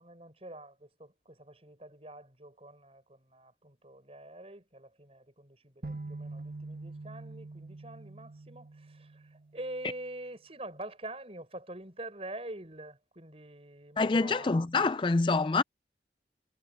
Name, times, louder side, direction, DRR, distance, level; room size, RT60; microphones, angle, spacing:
voice 1, 0.0-14.6, right 1 dB, 35° right, 6.6 m, -46 dB
sound 1, 5.8-9.8, right 2 dB, 55° right, 1.8 m, -44 dB
voice 2, 14.0-15.6, left 3 dB, 30° left, 0.4 m, -26 dB
head